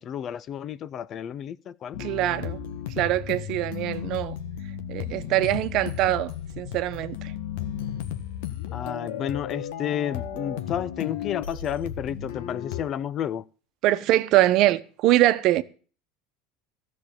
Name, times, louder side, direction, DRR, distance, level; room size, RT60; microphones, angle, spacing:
voice 1, 0.0-2.0 8.7-13.4, left 9 dB, 45° left, 0.7 m, -31 dB
sound 1, 1.9-12.8, left 9 dB, 75° left, 1.5 m, -34 dB
voice 2, 2.0-2.6 3.0-4.3 4.9-7.3 13.8-15.6, right 15 dB, 55° right, 1.0 m, -23 dB
14.0 x 6.4 x 8.9 m
hypercardioid pair, 95°, 0 cm